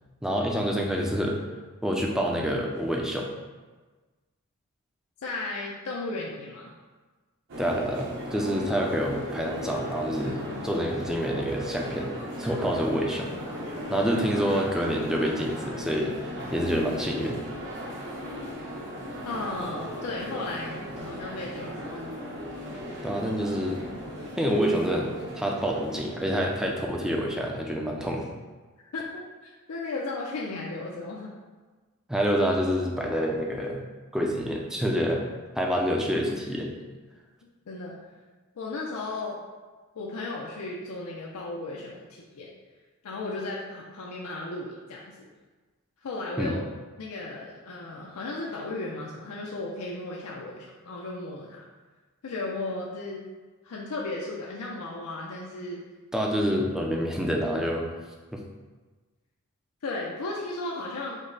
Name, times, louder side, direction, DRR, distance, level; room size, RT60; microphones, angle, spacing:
voice 1, 0.2-1.4 1.8-3.3 7.6-12.1 12.4-13.3 13.9-16.1 16.5-17.4 23.0-23.8 24.4-28.3 32.1-33.8 34.1-35.2 35.6-36.8 46.4-46.6 56.1-57.9 58.3-58.4, equal, 5° right, -1 dB, 0.3 m, -27 dB
voice 2, 5.2-6.7 19.2-21.8 28.9-29.2 29.7-31.3 37.7-38.0 38.6-39.4 40.0-42.5 43.0-45.3 46.0-46.7 47.0-51.6 52.2-53.2 53.6-55.8 59.8-61.2, left 2 dB, 85° left, -3 dB, 0.5 m, -35 dB
sound 1, 7.5-27.4, equal, 55° right, 0.8 m, -37 dB
5.2 x 2.1 x 3.9 m, 1.3 s
head